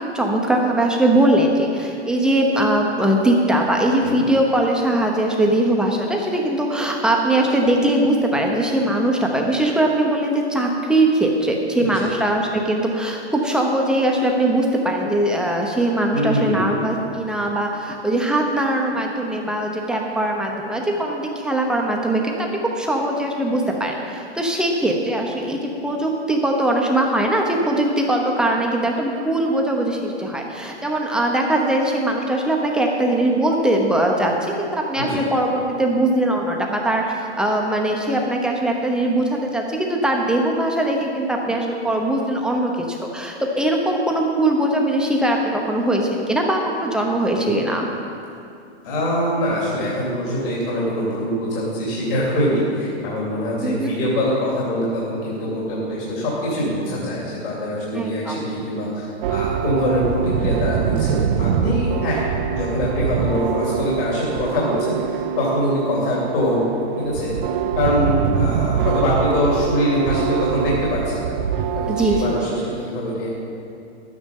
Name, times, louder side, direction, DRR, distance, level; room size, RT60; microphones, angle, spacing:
voice 1, 0.1-22.2 22.7-47.9 53.6-53.9 57.9-58.4 71.9-72.4, right 1 dB, ahead, 0 dB, 0.9 m, -21 dB
voice 2, 11.8-12.1 16.1-16.7 35.0-35.2 47.4-47.6 48.8-66.6 67.0-67.4 67.8-71.3 71.7-73.4, left 1 dB, 50° left, -6 dB, 3.3 m, -23 dB
sound 1, 59.2-72.7, right 8 dB, 50° right, 0.7 m, -24 dB
12.0 x 9.8 x 5.4 m, 2.5 s
hypercardioid pair, 145°, 34 cm